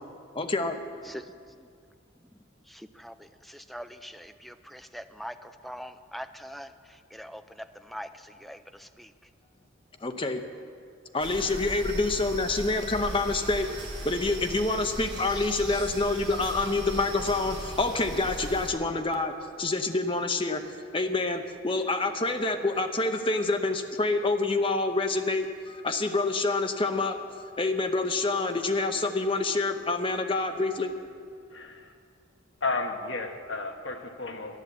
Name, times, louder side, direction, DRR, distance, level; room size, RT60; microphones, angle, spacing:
voice 1, 0.3-0.8 10.0-10.4 11.1-13.7 14.0-20.6 20.9-27.2 27.6-30.9, left 3 dB, 25° left, 6 dB, 0.8 m, -27 dB
voice 2, 1.0-1.7 2.6-9.1, equal, ahead, 9 dB, 0.4 m, -43 dB
sound 1, 11.2-18.7, right 1 dB, 25° right, 3.1 m, -38 dB
voice 3, 31.5-31.8 32.6-34.6, left 3 dB, 60° left, 5 dB, 1.2 m, -32 dB
11.5 x 11.0 x 8.0 m, 2.2 s
head